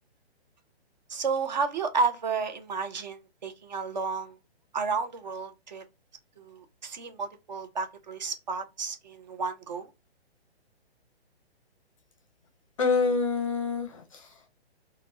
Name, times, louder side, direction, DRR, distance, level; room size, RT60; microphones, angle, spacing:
voice 1, 1.1-4.4 4.7-5.8 6.4-9.9, right 4 dB, 45° right, 0.5 m, -32 dB
voice 2, 12.8-14.5, left 4 dB, 30° left, 0.5 m, -27 dB
4.0 x 2.1 x 2.5 m
hypercardioid pair, 155°, 33 cm